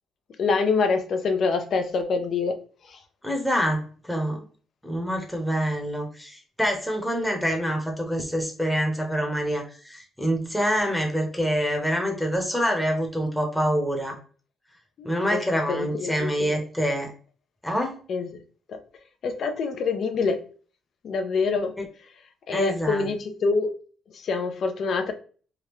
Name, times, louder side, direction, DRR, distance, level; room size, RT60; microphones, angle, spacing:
voice 1, 0.4-2.6 2.8-3.0 15.0-16.6 18.1-18.4 18.7-18.8 19.2-20.4 21.0-21.8 22.5-23.7 24.1-25.1, left 4 dB, 60° left, 7 dB, 0.6 m, -26 dB
voice 2, 3.2-4.4 4.8-14.2 15.0-17.1 17.6-18.0 21.8-21.9 22.5-23.1, equal, ahead, 2 dB, 0.9 m, -26 dB
3.5 x 2.3 x 3.0 m, 0.41 s
cardioid pair, 90°, 0 cm